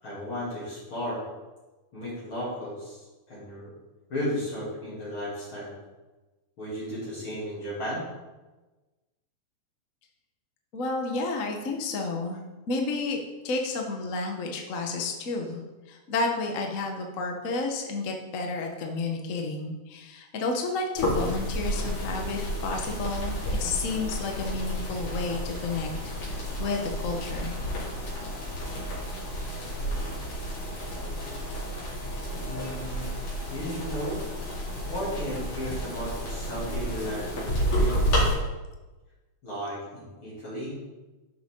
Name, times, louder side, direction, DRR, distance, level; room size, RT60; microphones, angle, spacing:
voice 1, 0.0-1.2 1.9-3.7 4.1-5.7 6.6-8.1 32.5-33.1 33.5-34.2 34.9-37.5 37.7-38.1 39.4-40.8, equal, 45° left, -10 dB, 3.7 m, -34 dB
voice 2, 10.7-13.2 13.4-15.6 15.9-25.9 26.2-27.5, left 3 dB, 60° left, 2 dB, 0.8 m, -31 dB
sound 1, 21.0-38.3, equal, 90° left, 4.2 m, -31 dB
sound 2, 21.6-38.4, equal, 10° right, 3.2 m, -46 dB
11.5 x 6.4 x 3.8 m, 1.2 s
omnidirectional pair, 3.3 m